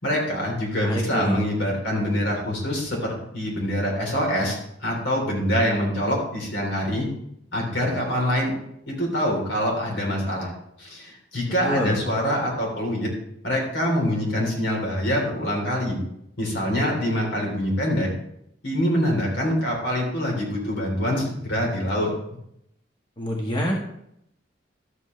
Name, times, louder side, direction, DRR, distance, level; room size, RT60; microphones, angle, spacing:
voice 1, 0.0-7.1 7.5-8.5 8.9-10.5 10.8-13.1 13.4-16.0 16.4-18.1 18.6-22.1, equal, 80° left, -1 dB, 3.5 m, -25 dB
voice 2, 0.7-1.4 11.6-12.0 23.2-23.7, equal, 25° left, -2 dB, 1.4 m, -26 dB
12.5 x 8.1 x 3.2 m, 0.76 s
head